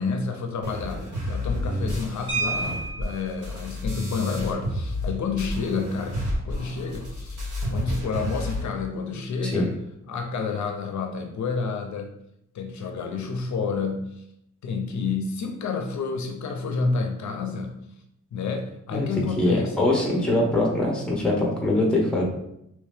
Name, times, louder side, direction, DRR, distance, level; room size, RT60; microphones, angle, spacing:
voice 1, 0.0-6.2 6.4-7.4 7.7-9.7 10.1-12.1 12.5-14.2 14.6-17.8 18.3-19.8 20.2-20.4, left 4 dB, 70° left, 4 dB, 0.5 m, -29 dB
sound 1, 0.6-5.1 5.4-8.6, left 1 dB, 75° right, 1.3 m, -30 dB
sound 2, 2.3-3.4 4.8-4.9 5.3-5.5 5.8-6.1, right 4 dB, 40° right, 1.0 m, -30 dB
voice 2, 19.4-22.2, left 1 dB, 5° left, -2 dB, 0.7 m, -23 dB
3.0 x 2.7 x 3.3 m, 0.77 s
wide cardioid pair, 170°, 30 cm